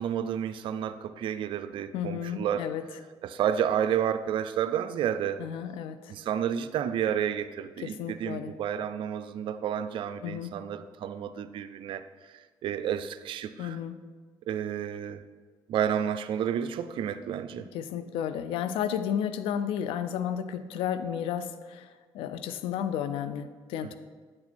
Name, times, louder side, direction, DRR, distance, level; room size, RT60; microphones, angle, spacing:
voice 1, 0.0-2.7 3.2-5.4 6.1-12.0 12.6-13.8 14.5-15.2 15.7-17.7, right 9 dB, 70° right, 0.4 m, -30 dB
voice 2, 1.9-2.8 5.4-6.1 7.8-8.5 10.2-10.5 13.6-14.0 17.5-23.9, left 9 dB, 80° left, 0.4 m, -33 dB
8.6 x 4.4 x 4.3 m
supercardioid pair, 70°, 9 cm